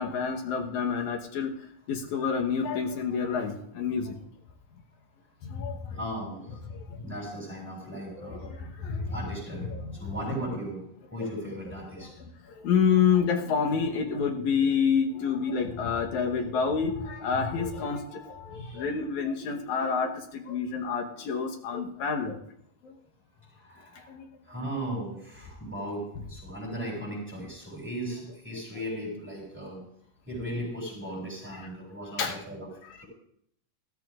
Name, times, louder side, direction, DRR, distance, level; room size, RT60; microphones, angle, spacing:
voice 1, 0.0-1.5 1.9-4.2 5.4-5.8 6.7-7.0 8.2-9.1 9.7-10.2 12.0-12.1 12.6-22.4 22.8-22.9 24.1-24.3 31.6-31.7 32.2-32.4 32.8-33.0, left 6 dB, 70° left, 3 dB, 2.5 m, -28 dB
voice 2, 5.9-6.6 7.0-8.5 9.1-10.9 11.1-12.1 18.5-18.9 23.5-24.1 24.4-29.8 30.3-32.7, equal, 5° right, -3 dB, 6.3 m, -37 dB
20.0 x 14.0 x 2.5 m, 0.71 s
omnidirectional pair, 3.7 m